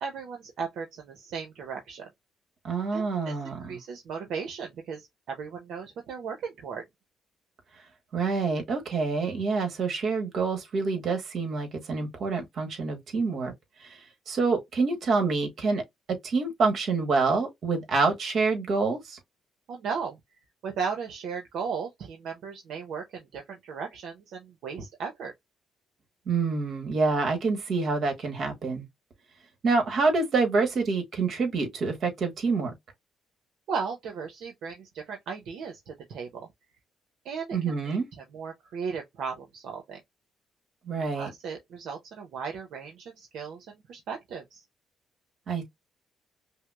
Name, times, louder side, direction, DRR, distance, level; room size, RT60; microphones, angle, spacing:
voice 1, 0.0-2.1 2.9-6.8 19.7-20.2 20.6-25.3 33.7-36.5 37.2-37.6 37.8-40.0 41.1-44.6, right 6 dB, 80° right, 0.8 m, -36 dB
voice 2, 2.6-3.8 8.1-13.5 13.8-14.0 14.3-15.8 16.2-19.2 26.3-28.9 29.6-32.7 37.5-38.0 40.8-41.3 45.5-45.6, right 4 dB, 60° right, 1.5 m, -27 dB
5.5 x 2.0 x 2.3 m
cardioid pair, 90°, 0 cm